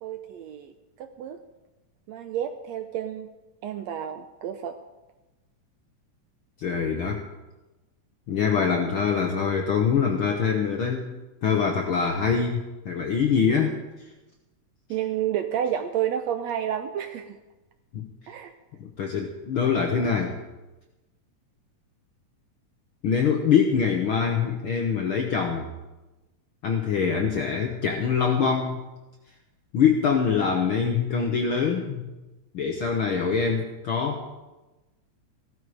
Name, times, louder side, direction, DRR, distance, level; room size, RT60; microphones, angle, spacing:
voice 1, 0.0-0.7 1.0-1.4 2.1-3.3 3.6-4.8 14.9-17.4 18.3-18.5, right 10 dB, 75° right, 8 dB, 1.6 m, -30 dB
voice 2, 6.6-7.2 8.3-11.1 11.4-12.6 12.8-13.8 17.9-18.1 19.0-20.4 23.0-25.7 26.6-28.8 29.7-32.1 32.5-34.3, left 6 dB, 70° left, 2 dB, 1.3 m, -24 dB
16.0 x 13.0 x 4.9 m, 1.1 s
omnidirectional pair, 3.7 m